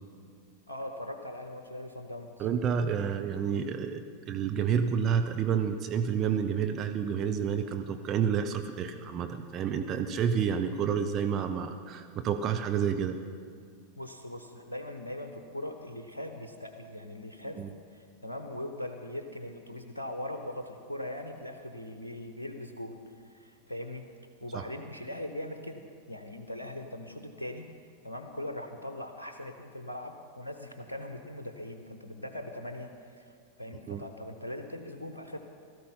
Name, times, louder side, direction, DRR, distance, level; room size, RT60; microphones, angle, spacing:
voice 1, 0.7-2.5 14.0-17.6 17.9-23.0 23.2-24.0 24.4-25.8 26.1-27.7 28.0-35.4, left 1 dB, 80° left, 6 dB, 0.9 m, -40 dB
voice 2, 2.4-13.2 17.6-17.7 24.5-24.6 33.9-34.0, right 7 dB, 30° right, 7 dB, 0.7 m, -29 dB
17.0 x 13.5 x 5.6 m, 2.1 s
figure-of-eight pair, 90°, 0 cm